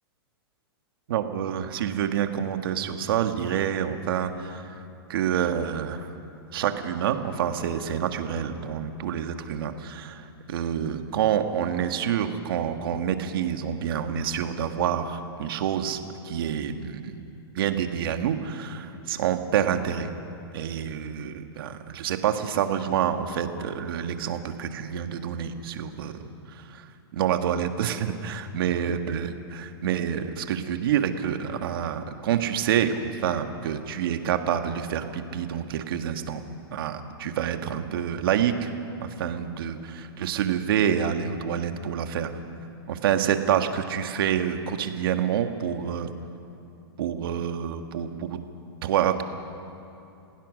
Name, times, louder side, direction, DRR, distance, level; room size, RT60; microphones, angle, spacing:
voice 1, 1.1-4.8 5.1-6.1 6.5-17.2 17.5-20.1 20.5-26.1 26.5-36.4 36.7-38.7 39.0-42.3 42.9-46.1 47.0-48.5 48.8-49.2, right 9 dB, 60° right, 7 dB, 1.7 m, -27 dB
30.0 x 16.5 x 6.4 m, 2.7 s
hypercardioid pair, 155°, 14 cm